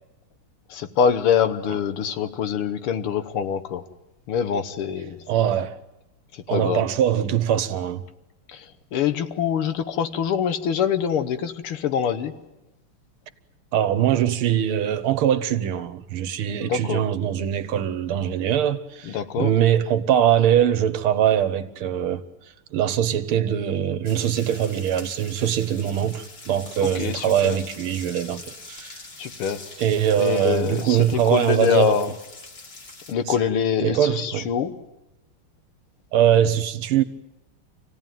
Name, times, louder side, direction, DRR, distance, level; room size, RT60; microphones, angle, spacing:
voice 1, 0.7-3.8 4.3-5.2 6.3-6.8 8.5-8.7 8.9-12.4 16.6-17.0 19.1-19.5 27.0-27.6 29.2-29.6 30.2-32.1 33.1-34.7, left 8 dB, 85° left, 2.0 m, -24 dB
voice 2, 5.3-5.8 6.5-8.0 13.7-22.2 22.7-29.0 29.8-32.0 33.3-33.4 33.8-34.5 36.1-37.0, right 10 dB, 80° right, 1.9 m, -22 dB
sound 1, 24.0-33.1, left 3 dB, 50° left, 2.9 m, -43 dB
26.5 x 16.5 x 9.2 m
omnidirectional pair, 2.4 m